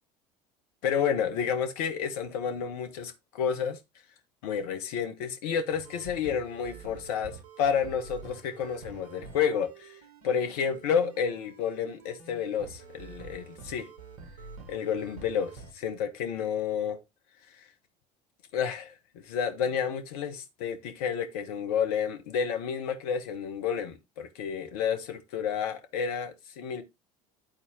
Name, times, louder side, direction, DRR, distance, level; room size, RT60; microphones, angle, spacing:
voice 1, 0.8-3.8 4.4-10.0 10.2-13.9 14.7-17.0 18.5-19.0 19.2-26.8, left 7 dB, 65° left, 1.2 m, -30 dB
sound 1, 5.7-15.7, right 5 dB, 70° right, 1.4 m, -48 dB
11.5 x 4.2 x 2.9 m
figure-of-eight pair, 65°, 20 cm